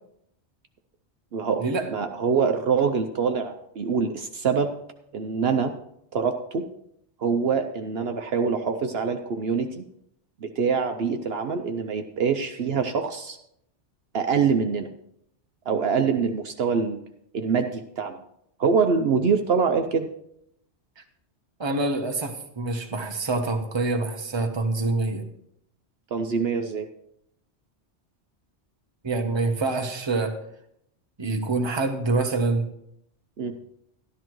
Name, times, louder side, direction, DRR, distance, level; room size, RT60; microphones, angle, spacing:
voice 1, 1.3-1.6 1.9-4.7 5.1-5.7 6.1-6.6 7.2-9.8 10.4-13.4 14.1-14.9 15.7-17.0 17.3-18.2 18.6-20.1 26.1-26.9 33.4-33.5, right 5 dB, 65° right, 6 dB, 0.9 m, -24 dB
voice 2, 21.6-25.2 29.0-30.4 31.2-32.7, right 3 dB, 25° right, 4 dB, 1.0 m, -26 dB
12.5 x 12.5 x 3.1 m, 0.75 s
omnidirectional pair, 1.2 m